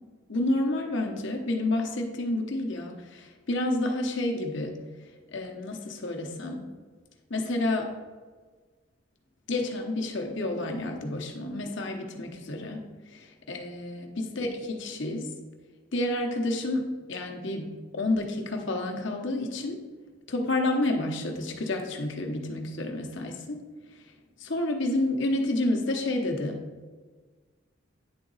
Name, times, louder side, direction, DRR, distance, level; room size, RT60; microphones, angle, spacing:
voice 1, 0.3-4.7 5.3-6.6 7.3-7.9 9.5-12.8 13.1-15.3 15.9-19.8 20.3-23.6 24.4-26.6, left 2 dB, 55° left, 2 dB, 0.9 m, -29 dB
9.6 x 3.9 x 4.0 m, 1.4 s
head